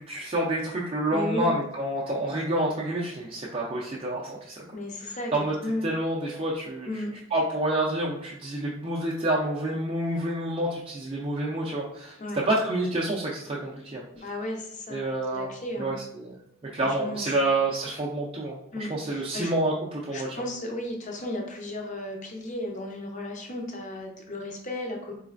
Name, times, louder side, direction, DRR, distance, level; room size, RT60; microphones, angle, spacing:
voice 1, 0.0-4.6 5.3-5.5 5.8-6.9 7.3-12.2 12.5-14.0 14.9-15.5 15.8-16.4 16.7-18.6 18.9-20.3, right 1 dB, 25° right, -5 dB, 0.4 m, -28 dB
voice 2, 1.1-1.5 4.7-5.8 6.9-7.1 12.2-12.4 14.2-15.0 15.3-15.9 16.9-17.2 18.7-19.5 20.1-25.1, left 1 dB, 35° left, 2 dB, 0.6 m, -34 dB
4.0 x 3.2 x 2.5 m, 0.75 s
head